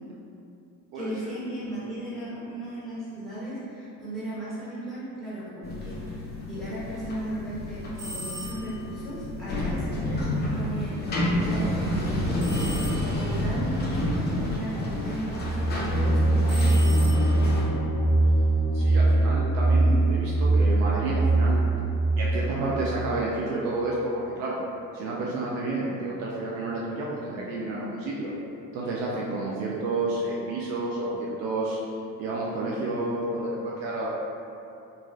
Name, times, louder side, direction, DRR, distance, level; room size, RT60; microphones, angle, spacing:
voice 1, 0.9-12.6 13.1-17.5 33.3-33.4, right 1 dB, ahead, -11 dB, 1.2 m, -36 dB
sound 1, 5.6-17.6, left 1 dB, 20° left, 0.6 m, -30 dB
sound 2, 7.9-8.9 12.4-13.4 16.4-17.6, equal, 30° right, 1.2 m, -39 dB
sound 3, 15.2-23.0, right 2 dB, 45° left, 0.9 m, -22 dB
voice 2, 18.7-21.6 22.2-24.6 24.9-28.3 28.7-31.8 32.2-34.1, right 2 dB, 60° right, -5 dB, 0.6 m, -30 dB
2.9 x 2.6 x 2.4 m, 2.7 s
figure-of-eight pair, 55°, 50 cm